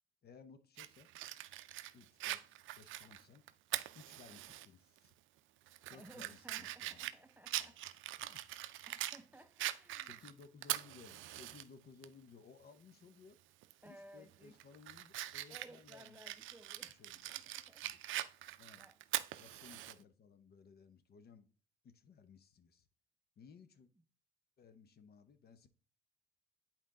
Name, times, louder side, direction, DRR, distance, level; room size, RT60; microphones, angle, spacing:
voice 1, 0.2-1.1 1.9-3.4 3.9-5.1 5.9-7.0 7.6-7.7 8.2-8.5 10.0-13.4 13.8-16.2 16.9-17.4 17.8-18.0 18.6-18.9 19.4-21.5 21.8-22.9 23.4-23.9 24.6-25.7, left 5 dB, 50° left, 0.8 m, -60 dB
Fire, 0.8-4.7 5.0-5.1 5.7-9.2 9.6-11.6 12.0-12.1 13.6-13.9 14.3-19.9, right 15 dB, 80° right, 0.4 m, -43 dB
voice 2, 5.9-8.0 8.8-10.2 13.8-14.6 15.5-17.9 18.8-19.0, right 1 dB, 10° right, 0.6 m, -59 dB
8.1 x 4.4 x 3.7 m
cardioid pair, 90°, 20 cm